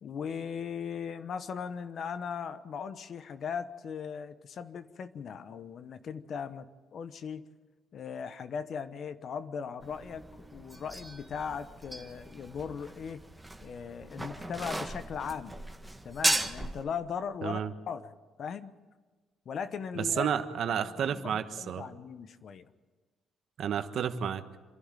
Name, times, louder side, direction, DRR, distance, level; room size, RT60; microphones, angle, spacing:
voice 1, 0.0-7.5 7.9-13.2 13.6-15.6 16.0-17.6 17.9-18.1 18.4-18.8 19.4-20.3 20.8-22.7, left 7 dB, 60° left, 12 dB, 1.1 m, -38 dB
sound 1, 9.8-16.8, right 1 dB, 5° right, 1.5 m, -36 dB
voice 2, 17.4-17.7 20.0-21.9 23.6-24.4, right 8 dB, 70° right, 9 dB, 1.3 m, -31 dB
26.5 x 11.5 x 9.1 m, 1.3 s
cardioid pair, 90°, 0 cm